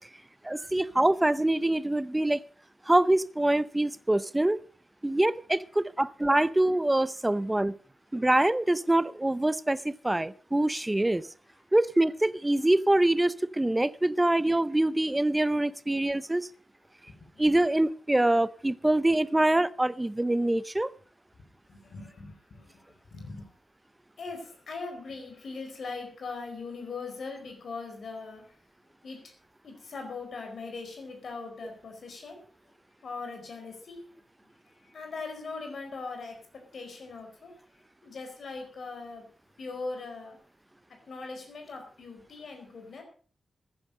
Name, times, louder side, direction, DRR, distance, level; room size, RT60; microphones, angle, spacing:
voice 1, 0.4-2.4 2.9-4.6 5.0-7.7 8.1-11.2 11.7-16.5 17.4-20.9, right 1 dB, 15° right, 17 dB, 0.6 m, -25 dB
voice 2, 17.1-17.4 21.7-23.5 24.2-28.4 29.0-29.3 29.6-32.4 33.0-34.0 34.7-36.4 36.7-37.5 38.0-39.2 39.6-40.4 41.1-43.0, left 4 dB, 70° left, 4 dB, 4.5 m, -40 dB
14.5 x 10.0 x 5.4 m, 0.42 s
cardioid pair, 85°, 0 cm